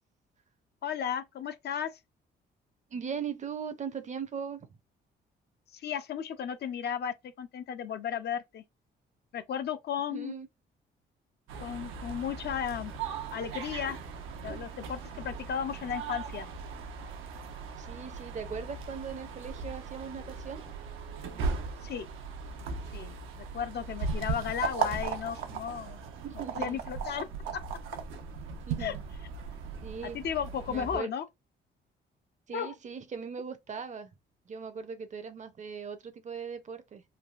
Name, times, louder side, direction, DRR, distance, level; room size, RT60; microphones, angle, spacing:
voice 1, 0.8-2.0 5.7-8.6 9.3-10.3 11.6-12.9 13.3-14.0 14.4-16.5 21.8-22.1 22.9-26.0 26.6-27.3 27.5-27.6 28.8-28.9 30.0-31.3 32.5-32.7, left 8 dB, 55° left, 0.5 m, -34 dB
voice 2, 2.9-4.8 10.1-10.5 17.8-20.7 26.2-26.8 28.7-29.0 29.8-30.2 30.7-31.1 32.5-34.1 34.5-37.0, right 6 dB, 35° right, 0.5 m, -39 dB
sound 1, 11.5-31.0, right 5 dB, 85° right, 0.6 m, -38 dB
3.2 x 2.3 x 2.3 m
cardioid pair, 90°, 20 cm